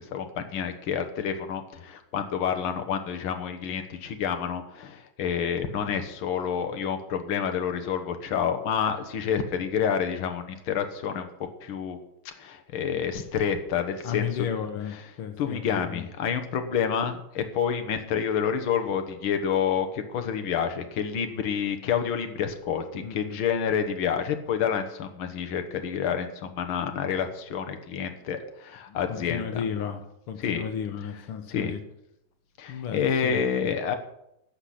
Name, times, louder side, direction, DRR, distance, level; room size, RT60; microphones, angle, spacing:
voice 1, 0.1-11.3 11.6-12.0 12.3-14.2 15.4-29.6 30.4-30.6 31.5-31.7 32.6-34.0, left 7 dB, 70° left, 7 dB, 2.0 m, -28 dB
voice 2, 14.0-16.1 23.0-23.4 28.9-31.8 32.7-34.0, left 8 dB, 85° left, 6 dB, 2.0 m, -34 dB
15.0 x 5.9 x 8.5 m, 0.81 s
omnidirectional pair, 2.4 m